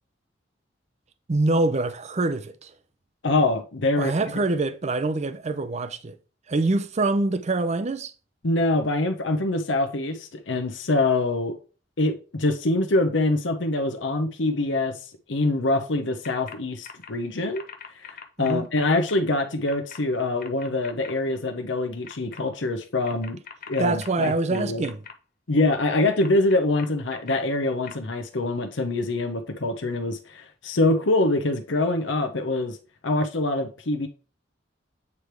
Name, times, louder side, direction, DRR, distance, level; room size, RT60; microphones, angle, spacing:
voice 1, 1.3-2.7 4.0-6.2 6.5-8.1 18.4-18.7 23.8-25.0, right 2 dB, 35° right, 0.5 m, -25 dB
voice 2, 3.2-4.1 8.4-11.6 12.0-23.4 23.7-24.8 25.5-32.8 33.0-34.1, left 2 dB, 85° left, 0.9 m, -24 dB
sound 1, 16.2-16.6 16.8-17.1 17.5-19.2 19.7-20.0 20.4-21.1 22.0-22.4 23.0-25.1 26.0-27.3 27.9-28.0, left 7 dB, 50° left, 0.8 m, -41 dB
8.3 x 3.4 x 4.6 m
head